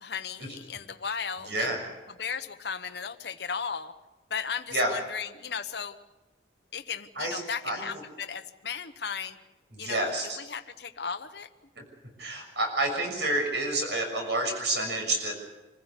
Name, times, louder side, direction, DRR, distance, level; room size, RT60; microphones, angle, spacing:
voice 1, 0.0-1.7 2.2-3.9 4.3-6.0 6.7-9.4 9.8-10.1 10.4-11.5, left 6 dB, 60° left, 10 dB, 1.0 m, -35 dB
voice 2, 1.5-1.8 4.7-4.9 7.1-8.0 9.7-10.4 11.8-11.9 12.2-15.3, right 1 dB, 65° right, 3 dB, 6.4 m, -29 dB
25.5 x 15.5 x 8.3 m, 1.1 s
head